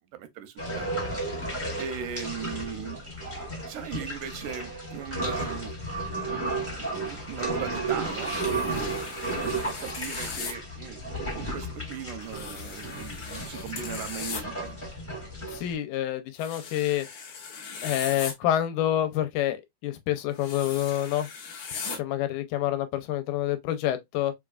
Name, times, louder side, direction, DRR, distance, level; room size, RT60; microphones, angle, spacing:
voice 1, 0.1-0.9 1.8-3.0 3.6-5.7 6.5-8.9 9.4-14.8 21.9-22.0, right 9 dB, 85° right, 2.2 m, -39 dB
sound 1, 0.6-15.7, right 2 dB, 10° left, 0.6 m, -33 dB
sound 2, 8.2-10.5 12.3-14.4 16.4-18.3 20.3-22.0, left 5 dB, 65° left, 1.3 m, -39 dB
voice 2, 15.5-17.1 17.8-21.3 22.0-24.3, left 12 dB, 80° left, 2.0 m, -27 dB
5.0 x 2.3 x 2.3 m
omnidirectional pair, 3.6 m